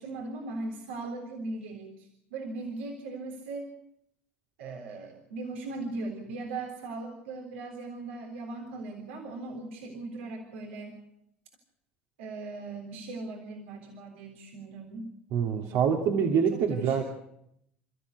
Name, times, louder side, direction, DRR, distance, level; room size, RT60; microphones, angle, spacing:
voice 1, 0.0-3.7 4.6-11.0 12.2-15.1 16.1-17.0, right 3 dB, 80° right, 1 dB, 3.7 m, -39 dB
voice 2, 15.3-17.0, right 7 dB, 65° right, 1 dB, 2.5 m, -25 dB
29.0 x 14.5 x 8.2 m, 0.77 s
hypercardioid pair, 70°, 6 cm